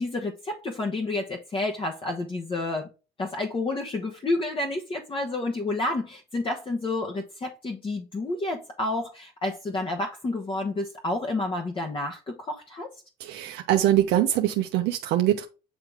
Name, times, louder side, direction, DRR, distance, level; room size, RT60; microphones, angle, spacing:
voice 1, 0.0-2.9 3.2-12.9, left 2 dB, 30° left, 1.2 m, -30 dB
voice 2, 13.2-15.5, right 12 dB, 85° right, 0.9 m, -23 dB
8.6 x 3.2 x 3.5 m
cardioid pair, 110°, 17 cm